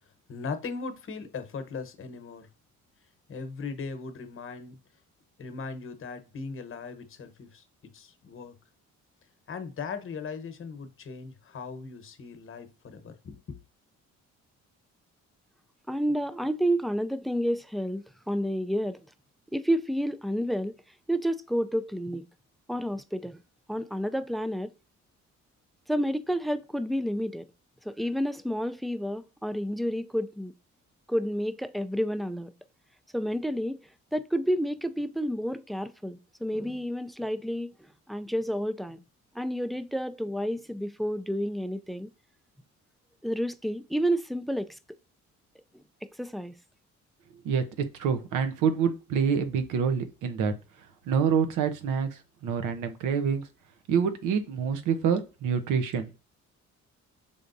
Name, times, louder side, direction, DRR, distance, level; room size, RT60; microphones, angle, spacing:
voice 1, 0.3-2.5 3.3-4.8 5.4-7.6 7.9-8.5 9.5-13.6, left 4 dB, 45° left, 1.0 m, -39 dB
voice 2, 15.9-19.0 19.5-20.8 21.1-22.3 22.7-23.4 23.7-24.7 25.9-27.5 27.9-30.5 31.1-32.5 33.1-33.8 34.1-37.7 38.1-39.0 39.3-42.1 43.2-44.8 45.7-45.8 46.2-46.5, equal, ahead, 0.3 m, -30 dB
voice 3, 48.0-50.5 51.1-52.1 52.4-53.4 53.9-56.1, right 6 dB, 90° right, 0.9 m, -26 dB
5.4 x 3.5 x 2.6 m
cardioid pair, 90°, 30 cm